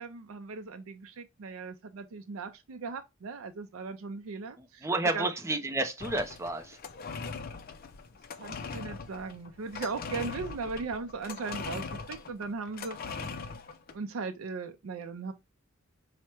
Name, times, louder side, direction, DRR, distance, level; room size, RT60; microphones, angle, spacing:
voice 1, 0.0-4.9 5.1-5.3 8.4-13.3 13.9-15.3, right 4 dB, 80° right, 0.5 m, -38 dB
voice 2, 4.6-6.8, right 2 dB, 15° right, 0.5 m, -31 dB
sound 1, 6.0-13.9, left 4 dB, 45° left, 0.5 m, -40 dB
4.6 x 2.1 x 4.3 m
head